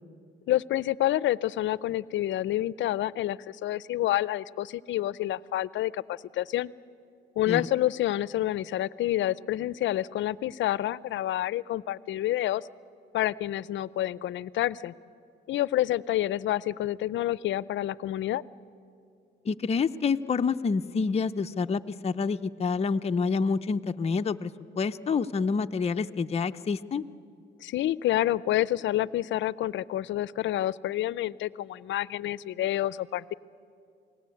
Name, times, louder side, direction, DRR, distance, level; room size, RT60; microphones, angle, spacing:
voice 1, 0.5-6.7 7.4-12.7 13.1-14.9 15.5-18.4 27.6-33.3, left 14 dB, 70° left, 20 dB, 0.5 m, -28 dB
voice 2, 19.5-24.5 24.8-27.0, left 5 dB, 30° left, 7 dB, 0.6 m, -27 dB
27.5 x 19.0 x 8.5 m, 2.5 s
cardioid pair, 90°, 20 cm